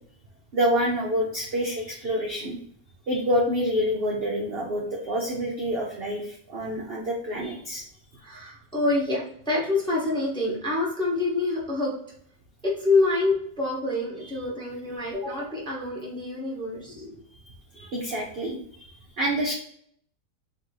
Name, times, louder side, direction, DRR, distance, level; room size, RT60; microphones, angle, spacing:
voice 1, 0.5-2.6 3.1-7.8 17.4-18.9 19.2-19.5, equal, 65° right, -1 dB, 0.5 m, -27 dB
voice 2, 8.2-11.9 12.6-17.2, left 2 dB, 5° left, -4 dB, 0.7 m, -26 dB
3.4 x 2.6 x 4.5 m, 0.64 s
omnidirectional pair, 1.8 m